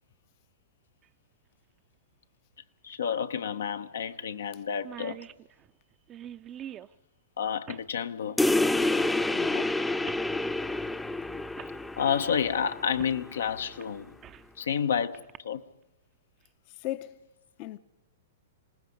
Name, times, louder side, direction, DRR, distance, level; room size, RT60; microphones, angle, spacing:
sound 1, 1.0-1.1 2.9-3.0 3.3-3.4 4.0-4.2 4.5-4.6 4.7-6.9 7.7-7.9 8.8-9.0 10.0-10.3 11.1-11.2 11.6-11.7 13.0-13.2 13.6-14.5 15.1-15.4, right 10 dB, 30° right, 0.6 m, -45 dB
voice 1, 2.8-5.2 7.4-8.4 12.0-14.1 14.6-15.6, left 7 dB, 80° left, 1.0 m, -30 dB
sound 2, 8.4-13.4, left 2 dB, 5° left, 0.7 m, -28 dB
voice 2, 9.3-9.8 16.7-17.2 17.6-17.8, left 15 dB, 45° left, 0.7 m, -37 dB
26.5 x 19.0 x 5.3 m
hypercardioid pair, 120°, 0 cm